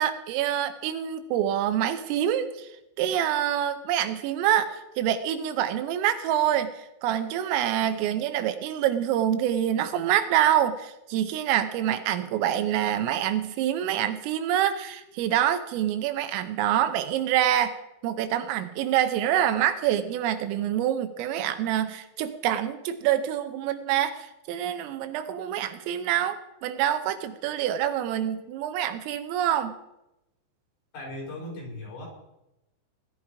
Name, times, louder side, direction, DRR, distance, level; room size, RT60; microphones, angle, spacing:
voice 1, 0.0-2.7 3.0-17.8 18.0-29.7, right 11 dB, 80° right, 9 dB, 3.5 m, -26 dB
voice 2, 30.9-32.1, left 1 dB, 50° left, -3 dB, 7.7 m, -37 dB
18.5 x 12.5 x 4.9 m, 0.90 s
omnidirectional pair, 5.9 m